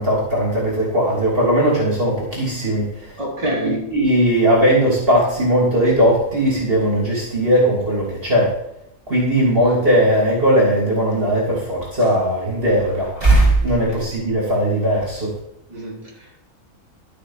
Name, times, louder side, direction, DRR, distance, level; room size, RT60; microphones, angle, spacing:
voice 1, 0.0-2.8 3.9-8.5 9.1-15.3, right 1 dB, 40° right, -3 dB, 3.2 m, -18 dB
voice 2, 3.2-3.9 13.6-13.8 15.7-16.5, right 1 dB, 20° right, -5 dB, 3.4 m, -27 dB
13.0 x 6.3 x 5.8 m, 0.78 s
omnidirectional pair, 1.5 m